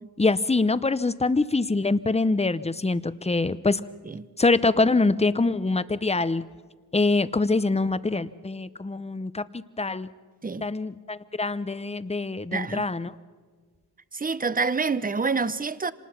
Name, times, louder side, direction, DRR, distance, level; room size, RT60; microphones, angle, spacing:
voice 1, 0.2-3.8 4.4-6.4 6.9-10.1 10.6-13.1, left 3 dB, 15° left, 0.7 m, -24 dB
voice 2, 12.5-12.9 14.1-15.9, right 4 dB, 20° right, 0.7 m, -27 dB
25.5 x 19.5 x 5.8 m
cardioid pair, 55°, 39 cm